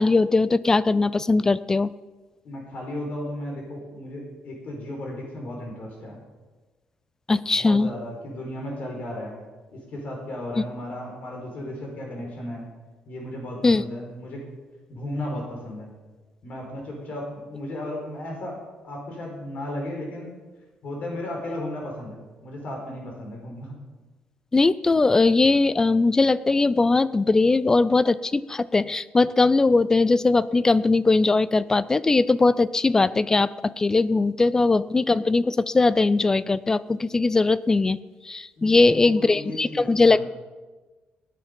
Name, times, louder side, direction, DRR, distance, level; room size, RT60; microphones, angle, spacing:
voice 1, 0.0-1.9 7.3-7.9 10.6-10.7 13.6-13.8 24.5-38.0 38.2-40.2, left 3 dB, 20° left, 18 dB, 0.4 m, -20 dB
voice 2, 2.4-6.2 7.5-9.4 9.7-12.6 13.1-14.4 14.9-15.9 16.4-20.3 20.8-23.7 38.6-40.3, left 1 dB, 50° left, 0 dB, 4.5 m, -35 dB
18.5 x 10.5 x 5.3 m, 1.3 s
cardioid pair, 135°, 3 cm